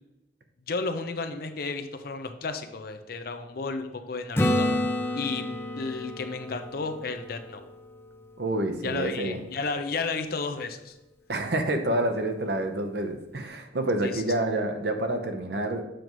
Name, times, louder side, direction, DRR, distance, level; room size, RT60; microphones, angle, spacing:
voice 1, 0.7-4.7 5.1-7.7 8.8-10.9 14.0-14.2, left 4 dB, 55° left, 7 dB, 0.6 m, -33 dB
Acoustic guitar / Strum, 4.4-8.1 13.0-13.1, left 1 dB, 15° left, 0.5 m, -29 dB
voice 2, 8.4-9.4 11.3-15.8, right 1 dB, 65° right, 6 dB, 0.8 m, -28 dB
7.7 x 5.2 x 3.1 m, 0.95 s
head